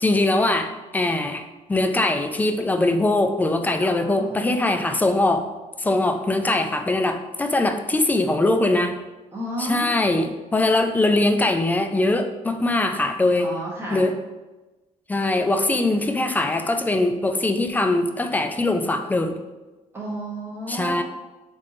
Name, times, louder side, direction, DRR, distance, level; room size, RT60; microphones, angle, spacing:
voice 1, 0.0-5.4 5.8-9.0 9.6-13.5 13.9-14.2 15.1-19.4 20.7-21.0, left 2 dB, 10° left, 7 dB, 0.4 m, -22 dB
voice 2, 3.8-4.3 9.3-10.2 13.3-14.1 19.9-21.0, right 1 dB, 20° right, -5 dB, 1.2 m, -32 dB
4.2 x 3.1 x 3.7 m, 1.1 s
cardioid pair, 105°, 14 cm